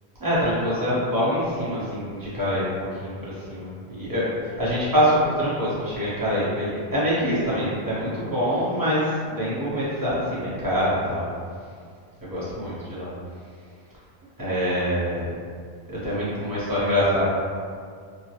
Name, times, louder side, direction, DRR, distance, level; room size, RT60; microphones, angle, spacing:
voice 1, 0.2-2.7 3.0-11.2 12.2-13.1 14.4-15.3 15.9-17.2, equal, 20° right, -10 dB, 0.8 m, -25 dB
3.2 x 2.1 x 2.8 m, 2.1 s
omnidirectional pair, 1.1 m